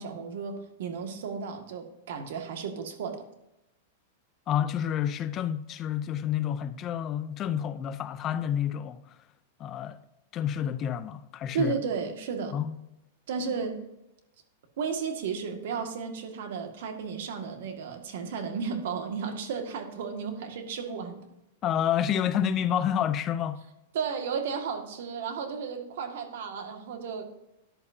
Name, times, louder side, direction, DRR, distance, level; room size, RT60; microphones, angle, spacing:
voice 1, 0.0-3.2 11.5-12.6 13.3-13.8 14.8-21.2 23.9-27.2, right 5 dB, 65° right, 1.9 m, -33 dB
voice 2, 4.5-9.0 9.6-10.0 10.3-11.7 12.5-12.8 21.6-23.6, left 9 dB, 25° left, 0.5 m, -29 dB
13.0 x 11.0 x 2.8 m
supercardioid pair, 165°, 0 cm